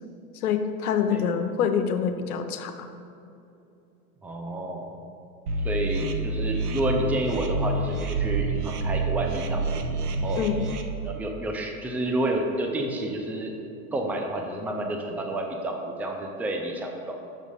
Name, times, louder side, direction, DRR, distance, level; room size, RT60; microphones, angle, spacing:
voice 1, 0.3-2.9 10.4-10.7, left 7 dB, 80° left, 7 dB, 0.9 m, -26 dB
voice 2, 4.2-4.9 5.6-9.6 10.2-10.4 11.0-13.5 13.9-17.2, right 1 dB, 5° right, 2 dB, 0.5 m, -29 dB
sound 1, 5.5-10.8, right 3 dB, 85° right, 0.9 m, -28 dB
6.5 x 6.0 x 5.4 m, 2.7 s
hypercardioid pair, 125°, 44 cm